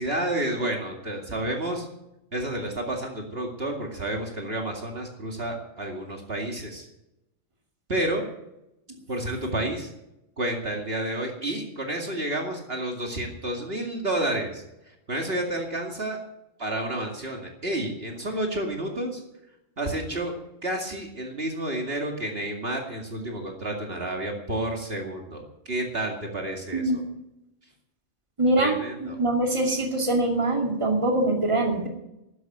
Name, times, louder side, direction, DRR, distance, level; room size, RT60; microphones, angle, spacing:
voice 1, 0.0-1.9 2.3-6.9 7.9-8.2 9.1-9.9 10.4-16.2 16.6-19.2 19.8-20.3 20.6-26.8 28.6-29.2, right 1 dB, 50° right, 1 dB, 2.5 m, -30 dB
voice 2, 26.7-27.1 28.4-31.9, right 2 dB, 25° right, 1 dB, 2.5 m, -24 dB
12.5 x 11.0 x 7.6 m, 0.88 s
omnidirectional pair, 1.3 m